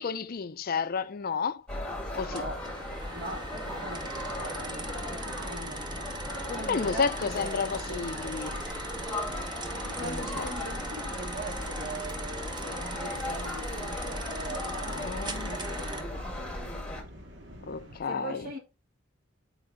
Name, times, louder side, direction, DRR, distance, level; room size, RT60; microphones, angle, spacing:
voice 1, 0.0-1.6 2.2-2.4 6.7-8.6 10.0-10.5 14.9-15.5 17.7-18.5, left 5 dB, 50° left, 0.4 m, -31 dB
sound 1, 1.7-17.0, left 1 dB, 5° left, 1.8 m, -37 dB
voice 2, 2.2-2.7 3.1-5.9 6.4-7.6 7.9-8.1 10.0-16.7 18.1-18.6, right 1 dB, 50° right, 2.7 m, -41 dB
sound 2, 2.4-16.0, right 2 dB, 25° right, 1.1 m, -40 dB
sound 3, 2.4-18.0, equal, 65° right, 2.0 m, -50 dB
8.6 x 4.7 x 3.8 m
head